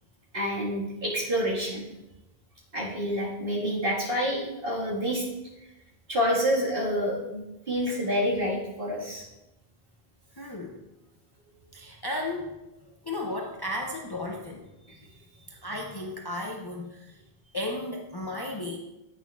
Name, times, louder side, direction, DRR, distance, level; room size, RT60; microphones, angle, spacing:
voice 1, 0.3-1.8 2.7-5.2 6.1-9.2, equal, 60° right, -5 dB, 1.9 m, -28 dB
voice 2, 10.3-10.8 11.7-12.7 13.0-14.7 15.5-17.2 17.5-18.8, left 1 dB, 30° left, 0 dB, 0.5 m, -34 dB
8.9 x 6.0 x 2.3 m, 0.95 s
omnidirectional pair, 1.0 m